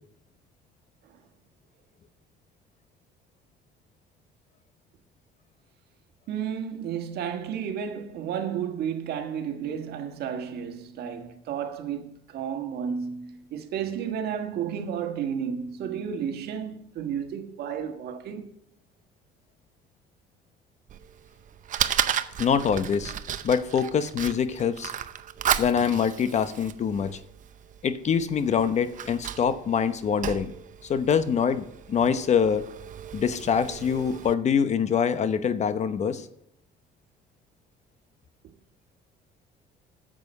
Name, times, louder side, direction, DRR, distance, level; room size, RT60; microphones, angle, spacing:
voice 1, 6.3-18.6 25.5-25.6, right 8 dB, 70° right, 1.5 m, -32 dB
Fire, 20.9-34.3, right 10 dB, 50° right, 0.7 m, -34 dB
voice 2, 22.4-23.1 23.4-24.9 25.6-27.2 27.8-30.5 30.8-32.7 33.1-36.3, left 7 dB, 45° left, 0.9 m, -24 dB
9.7 x 7.6 x 6.6 m
cardioid pair, 110°, 17 cm